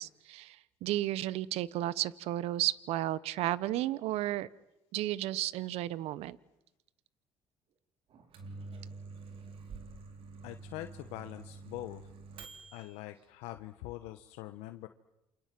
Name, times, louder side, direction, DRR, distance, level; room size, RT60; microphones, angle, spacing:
voice 1, 0.0-4.5 4.9-6.4, right 14 dB, 75° right, 20 dB, 1.0 m, -33 dB
Microwave oven, 8.1-12.9, right 4 dB, 60° right, 4.0 m, -47 dB
voice 2, 10.4-12.0 12.7-14.9, left 15 dB, 85° left, 8 dB, 1.2 m, -43 dB
29.0 x 26.0 x 7.6 m, 0.90 s
supercardioid pair, 90°, 11 cm